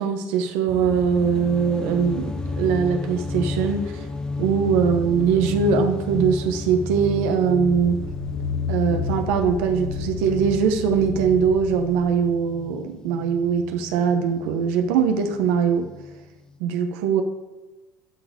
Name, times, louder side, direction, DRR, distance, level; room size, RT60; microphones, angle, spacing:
voice 1, 0.0-3.9 4.4-8.0 8.7-15.9 16.6-17.2, right 6 dB, 85° right, 6 dB, 1.0 m, -21 dB
sound 1, 0.7-16.6, left 3 dB, 10° left, 0.8 m, -33 dB
sound 2, 7.7-12.0 12.5-12.6, left 7 dB, 85° left, 1.2 m, -32 dB
12.5 x 4.2 x 8.0 m, 1.1 s
cardioid pair, 140°, 7 cm